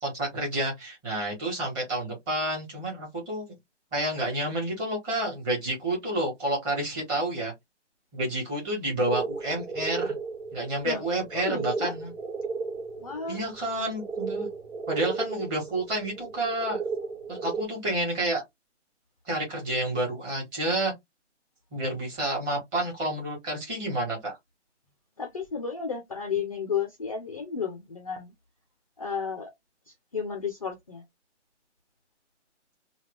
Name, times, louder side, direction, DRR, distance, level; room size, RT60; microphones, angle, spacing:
voice 1, 0.0-3.5 3.9-7.5 8.1-10.1 10.5-12.1 13.3-14.5 14.9-16.8 17.3-18.4 19.2-20.9 21.7-24.4, right 1 dB, 10° right, 1.3 m, -29 dB
sound 1, 9.1-17.6, right 4 dB, 70° right, 1.3 m, -35 dB
voice 2, 11.3-11.9 12.9-13.4 25.2-28.3 29.0-29.5 29.9-31.0, left 6 dB, 30° left, 0.5 m, -33 dB
3.4 x 2.3 x 3.0 m
hypercardioid pair, 160°, 36 cm